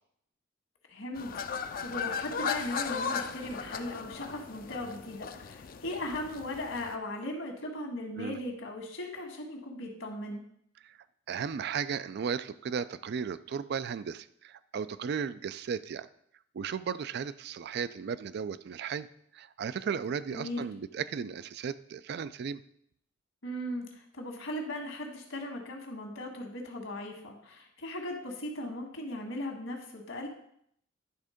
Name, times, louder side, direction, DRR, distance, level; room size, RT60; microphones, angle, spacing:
voice 1, 0.9-10.4 20.3-20.7 23.4-30.3, left 1 dB, 75° left, 2 dB, 1.7 m, -38 dB
sound 1, 1.2-7.0, left 6 dB, 45° left, 0.5 m, -37 dB
voice 2, 11.3-16.1 16.5-19.1 19.3-22.6, right 6 dB, 55° right, 15 dB, 0.3 m, -35 dB
10.5 x 3.7 x 5.0 m, 0.70 s
head